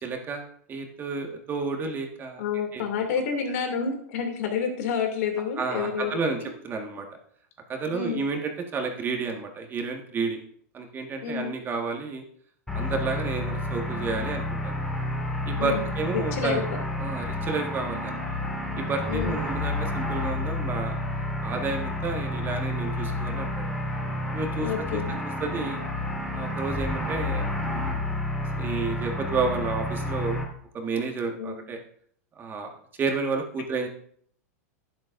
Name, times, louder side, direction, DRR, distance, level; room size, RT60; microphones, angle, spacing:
voice 1, 0.0-2.4 2.7-2.8 5.6-6.4 6.6-7.1 7.7-10.4 10.7-12.2 12.7-14.7 15.5-16.6 17.0-18.2 18.8-21.0 21.4-23.6 24.3-25.0 25.4-25.8 26.3-28.1 28.5-30.4 30.7-31.8 32.4-32.7 33.0-33.9, right 4 dB, 25° right, 3 dB, 1.6 m, -31 dB
voice 2, 2.4-6.5 7.9-8.2 11.2-11.6 15.6-15.9 16.3-16.8 19.1-19.4 24.6-25.2 31.4-31.5, left 6 dB, 70° left, 4 dB, 2.6 m, -29 dB
sound 1, 12.7-30.4, left 1 dB, 5° left, 2.6 m, -30 dB
11.0 x 10.5 x 2.6 m, 0.63 s
hypercardioid pair, 125°, 8 cm